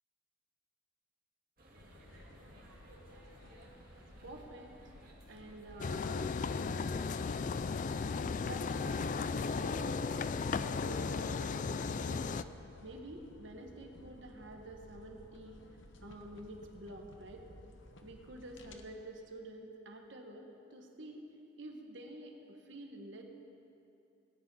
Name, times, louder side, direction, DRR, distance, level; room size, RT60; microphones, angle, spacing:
sound 1, 1.6-12.1, right 1 dB, 50° right, 2.0 m, -59 dB
sound 2, 1.7-18.8, left 1 dB, 75° left, 1.0 m, -56 dB
voice 1, 4.2-4.9 5.3-6.3 8.3-9.2 9.5-10.2 10.6-12.4 12.8-15.6 16.0-17.4 18.0-21.2 21.6-23.2, right 1 dB, 70° right, 2 dB, 1.5 m, -49 dB
sound 3, 5.8-12.4, left 4 dB, 40° left, 0.3 m, -35 dB
18.0 x 10.0 x 5.6 m, 2.7 s
head